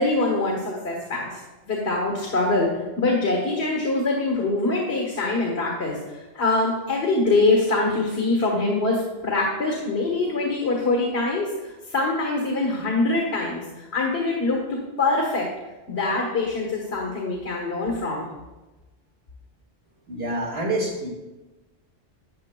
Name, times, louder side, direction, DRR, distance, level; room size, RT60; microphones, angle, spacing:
voice 1, 0.0-1.4 1.7-11.5 11.9-15.5 15.9-18.3, left 2 dB, 85° left, -1 dB, 1.7 m, -24 dB
voice 2, 20.1-21.1, right 1 dB, 75° right, -2 dB, 2.4 m, -27 dB
12.0 x 8.9 x 2.3 m, 1.1 s
omnidirectional pair, 1.0 m